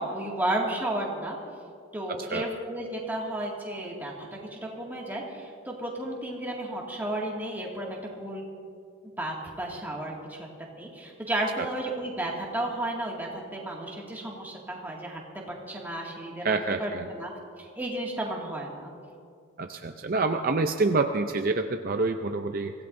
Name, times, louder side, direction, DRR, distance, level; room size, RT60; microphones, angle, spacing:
voice 1, 0.0-1.4 1.9-8.4 9.0-10.5 10.8-15.2 15.7-17.3 17.6-18.9, right 1 dB, 10° right, -3 dB, 2.0 m, -33 dB
voice 2, 16.4-17.1 19.6-22.7, right 3 dB, 40° right, 6 dB, 0.5 m, -27 dB
25.0 x 16.5 x 2.6 m, 2.3 s
head